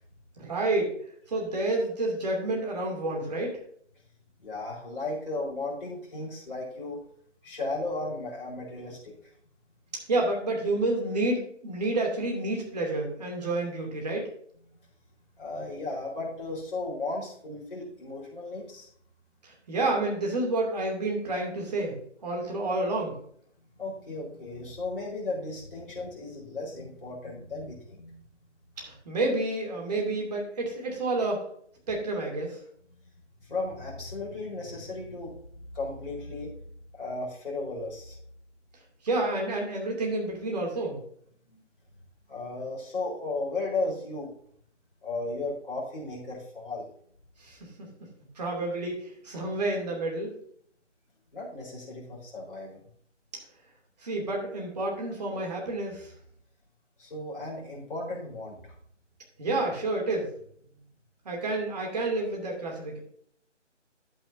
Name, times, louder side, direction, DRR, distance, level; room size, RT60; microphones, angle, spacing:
voice 1, 0.4-0.9 1.3-3.6 10.1-14.3 19.4-23.2 28.8-31.4 31.9-32.6 39.0-41.0 47.4-47.9 48.4-50.3 54.0-56.1 59.4-60.3 61.2-63.0, right 2 dB, 35° right, -1 dB, 2.7 m, -29 dB
voice 2, 4.4-7.0 7.4-9.1 15.4-18.9 23.8-28.2 33.5-35.3 35.7-36.5 36.9-38.2 41.5-41.6 42.3-44.3 45.0-46.9 51.3-52.8 57.0-58.7, left 2 dB, 45° left, -3 dB, 4.3 m, -35 dB
11.0 x 8.6 x 2.7 m, 0.64 s
figure-of-eight pair, 160°, 37 cm